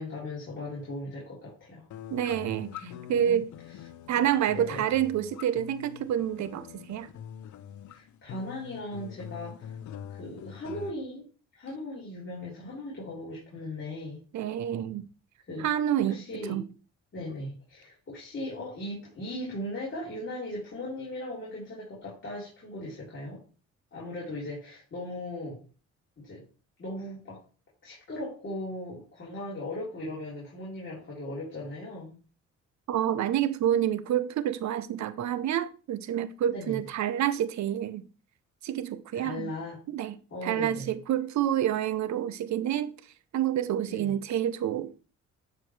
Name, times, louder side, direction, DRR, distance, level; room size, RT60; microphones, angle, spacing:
voice 1, 0.0-1.9 2.8-3.5 4.5-4.9 7.9-9.8 10.1-11.2 11.6-14.2 15.5-15.7 16.0-16.6 17.1-23.4 23.9-25.6 26.2-26.4 26.8-27.4 27.8-32.2 36.5-36.8 39.1-39.8 40.3-40.9 43.9-44.1, left 1 dB, 40° left, 3.9 m, -38 dB
sound 1, 1.9-10.9, left 9 dB, 75° left, 0.8 m, -44 dB
voice 2, 2.1-3.5 4.1-7.1 14.3-15.1 15.6-16.2 16.5-16.6 32.9-38.0 38.6-39.5 39.9-40.1 40.4-42.9 43.3-45.0, right 10 dB, 65° right, 0.8 m, -28 dB
10.5 x 4.9 x 3.3 m
cardioid pair, 90°, 30 cm